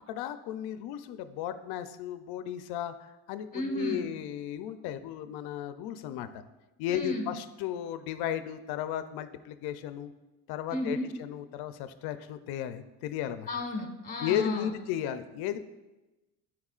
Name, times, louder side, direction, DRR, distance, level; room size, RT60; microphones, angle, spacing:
voice 1, 0.1-2.9 3.3-6.4 6.8-10.1 10.5-13.5 14.2-15.6, left 10 dB, 85° left, 11 dB, 0.6 m, -35 dB
voice 2, 3.5-4.0 6.9-7.3 10.7-11.1 13.5-14.8, left 1 dB, 25° left, 3 dB, 1.4 m, -33 dB
12.0 x 4.8 x 2.4 m, 1.0 s
cardioid pair, 125°, 37 cm